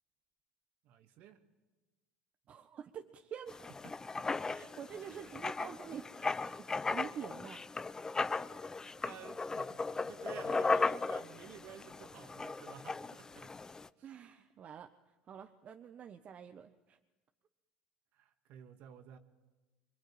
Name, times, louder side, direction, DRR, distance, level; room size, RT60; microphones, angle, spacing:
voice 1, 0.8-1.4 3.8-4.7 9.0-14.1 18.1-19.2, right 9 dB, 60° right, 7 dB, 2.5 m, -53 dB
voice 2, 2.5-3.6 4.5-7.6 14.0-17.0, right 8 dB, 45° right, 7 dB, 1.3 m, -47 dB
Writing, 3.5-13.9, left 3 dB, 20° left, 0.8 m, -37 dB
25.5 x 23.5 x 9.0 m, 1.2 s
hypercardioid pair, 75°, 3 cm